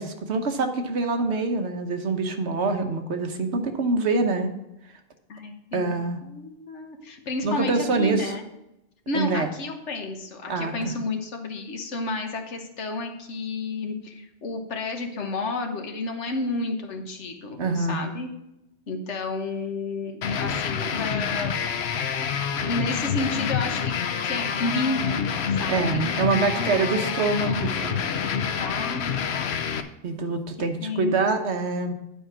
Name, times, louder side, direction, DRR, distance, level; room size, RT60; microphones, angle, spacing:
voice 1, 0.0-4.5 5.7-6.2 7.4-8.3 9.1-9.5 10.5-10.9 17.6-18.1 25.7-28.0 30.0-31.9, right 3 dB, 70° right, 6 dB, 1.3 m, -25 dB
voice 2, 5.3-8.4 9.1-18.3 18.9-21.5 22.6-24.0 24.2-27.6 28.6-29.2 30.8-31.1, left 3 dB, 85° left, 4 dB, 1.5 m, -31 dB
sound 1, 20.2-29.8, left 7 dB, 70° left, 0.9 m, -27 dB
9.9 x 4.7 x 6.1 m, 0.88 s
omnidirectional pair, 1.2 m